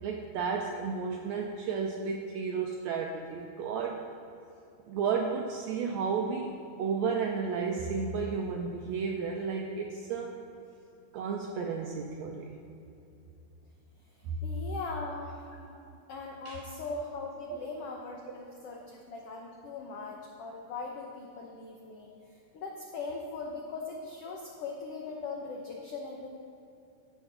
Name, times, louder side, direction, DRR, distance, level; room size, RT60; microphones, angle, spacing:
voice 1, 0.0-4.0 4.9-10.3 11.1-12.5 16.4-16.6 17.5-17.6, right 5 dB, 85° right, 2 dB, 1.6 m, -32 dB
voice 2, 14.2-15.8 16.1-22.1 22.5-26.3, left 3 dB, 85° left, 0 dB, 1.3 m, -40 dB
15.0 x 6.1 x 3.8 m, 2.8 s
omnidirectional pair, 3.8 m